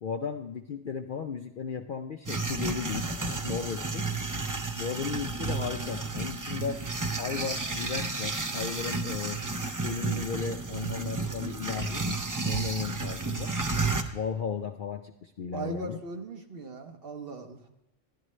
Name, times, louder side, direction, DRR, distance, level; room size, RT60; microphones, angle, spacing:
voice 1, 0.0-3.1 3.4-4.0 4.8-6.8 7.2-9.4 9.8-12.0 12.4-13.5 14.1-16.0, left 6 dB, 60° left, 5 dB, 0.6 m, -35 dB
sound 1, 2.3-14.0, right 3 dB, 30° right, 0.4 m, -32 dB
voice 2, 15.5-17.7, right 3 dB, 50° right, 4 dB, 1.0 m, -39 dB
12.5 x 11.0 x 3.1 m, 0.88 s
omnidirectional pair, 1.3 m